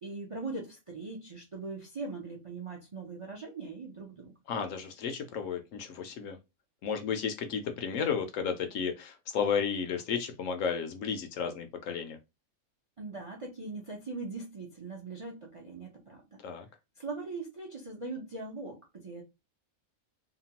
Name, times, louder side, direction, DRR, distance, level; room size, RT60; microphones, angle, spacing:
voice 1, 0.0-4.4 13.0-16.4 17.0-19.2, right 3 dB, 40° right, 0.4 m, -41 dB
voice 2, 4.5-6.4 6.8-12.2 16.4-16.7, left 6 dB, 70° left, 0.9 m, -33 dB
2.9 x 2.2 x 2.8 m
omnidirectional pair, 1.5 m